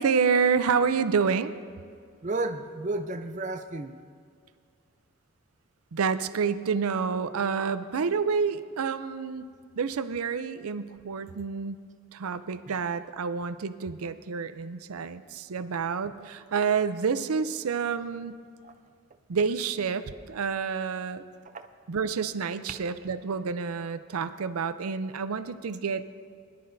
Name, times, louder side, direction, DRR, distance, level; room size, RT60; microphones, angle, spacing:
voice 1, 0.0-1.5 5.9-9.5 9.8-11.8 12.1-18.4 19.3-21.2 21.9-26.0, right 5 dB, 90° right, 11 dB, 0.5 m, -28 dB
voice 2, 2.2-4.0 12.7-12.8 18.6-18.7 21.5-21.7, right 2 dB, 35° right, 7 dB, 0.5 m, -32 dB
21.0 x 11.5 x 2.7 m, 2.1 s
head